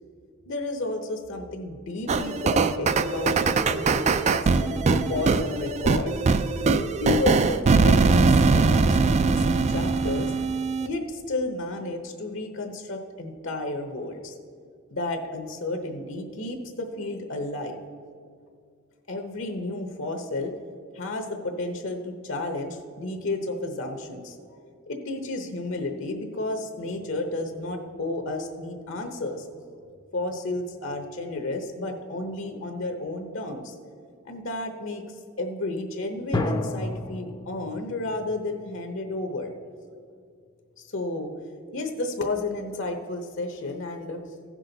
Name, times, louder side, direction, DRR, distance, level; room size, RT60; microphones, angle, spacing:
voice 1, 0.4-6.1 7.0-10.3 10.8-14.3 14.9-17.8 19.1-20.5 20.9-24.6 24.9-29.5 30.1-33.8 34.2-35.0 35.4-39.5 40.8-41.3 41.7-44.2, left 2 dB, 65° left, 5 dB, 0.9 m, -32 dB
sound 1, 2.1-10.9, right 4 dB, 35° right, 0.3 m, -21 dB
sound 2, 36.3-39.8, left 2 dB, 20° left, 0.5 m, -32 dB
15.5 x 6.2 x 4.0 m, 2.3 s
head